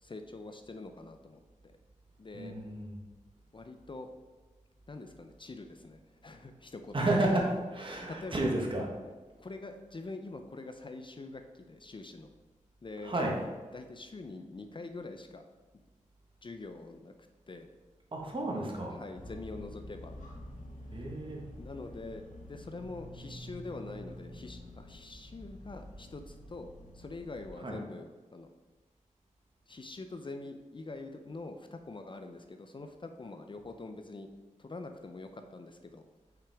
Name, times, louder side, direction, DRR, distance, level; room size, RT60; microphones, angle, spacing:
voice 1, 0.0-1.8 2.2-2.6 3.5-4.1 4.9-7.5 8.1-8.6 9.4-12.3 12.8-13.1 13.7-15.4 16.4-17.7 18.9-20.2 21.6-28.5 29.7-34.3 34.6-36.1, left 3 dB, 40° left, 6 dB, 0.5 m, -45 dB
voice 2, 2.3-3.0 6.9-8.9 13.0-13.3 18.1-18.9 20.9-21.4 27.6-27.8, right 1 dB, 40° right, 0 dB, 1.3 m, -31 dB
sound 1, 19.1-27.5, equal, 85° left, 1.1 m, -48 dB
5.8 x 5.0 x 3.5 m, 1.3 s
wide cardioid pair, 65°, 13 cm